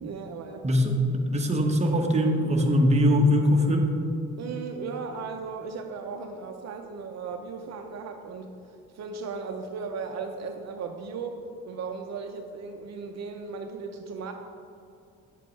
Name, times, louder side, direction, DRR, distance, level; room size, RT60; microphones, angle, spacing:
voice 1, 0.0-0.7 4.4-8.5 8.9-11.4 11.7-14.3, right 5 dB, 60° right, 4 dB, 0.7 m, -36 dB
voice 2, 0.6-3.9, equal, 20° right, 1 dB, 1.1 m, -22 dB
9.3 x 7.3 x 3.2 m, 2.5 s
cardioid pair, 90°, 30 cm